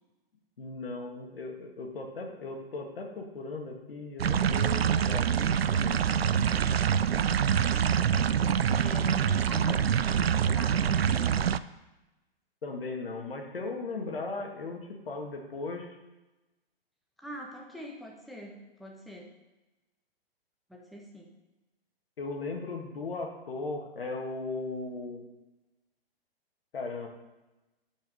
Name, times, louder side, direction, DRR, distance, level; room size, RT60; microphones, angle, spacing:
voice 1, 0.6-6.2 12.6-15.9 22.2-25.3 26.7-27.1, left 3 dB, 65° left, 2 dB, 2.0 m, -37 dB
sound 1, 4.2-11.6, right 8 dB, 75° right, 0.5 m, -25 dB
voice 2, 8.7-11.5 17.2-19.3 20.7-21.3, equal, ahead, -1 dB, 1.2 m, -44 dB
12.0 x 5.3 x 5.3 m, 1.0 s
figure-of-eight pair, 115°, 30 cm